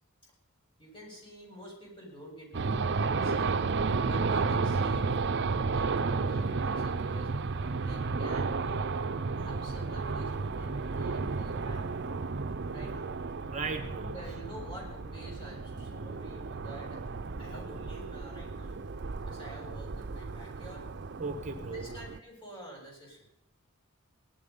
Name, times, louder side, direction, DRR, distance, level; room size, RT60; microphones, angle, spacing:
voice 1, 0.8-3.7 4.0-7.3 7.8-8.9 9.4-11.9 12.7-13.0 14.0-17.0 17.4-18.8 19.3-20.9 21.7-23.2, right 1 dB, 25° left, -2 dB, 7.2 m, -48 dB
sound 1, 2.5-22.2, right 4 dB, 55° right, 0.6 m, -32 dB
voice 2, 13.5-14.1 21.2-22.0, right 3 dB, 35° right, 5 dB, 1.2 m, -36 dB
19.0 x 12.0 x 5.5 m, 0.79 s
head